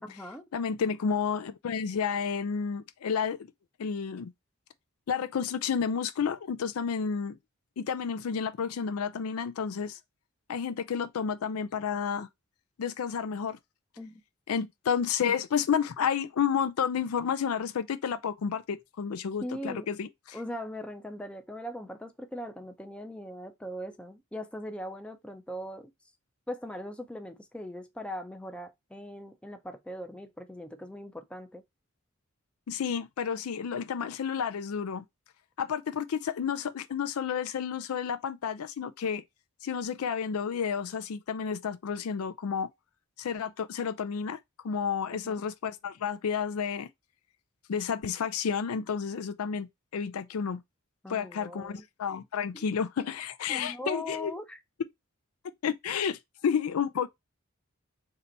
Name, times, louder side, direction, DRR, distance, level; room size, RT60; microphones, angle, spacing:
voice 1, 0.0-0.4 14.0-14.2 19.4-19.9 20.3-25.9 26.5-31.6 45.1-45.4 51.0-51.8 52.5-52.7 53.5-54.6, equal, 5° left, 0.4 m, -40 dB
voice 2, 0.5-3.5 3.8-4.3 5.1-7.4 7.8-10.0 10.5-12.3 12.8-13.6 14.5-20.4 32.7-35.0 35.6-39.2 39.6-42.7 43.2-44.4 44.6-46.9 47.7-50.6 51.1-54.3 55.6-57.1, left 7 dB, 90° left, 0.4 m, -31 dB
3.3 x 2.8 x 3.9 m
head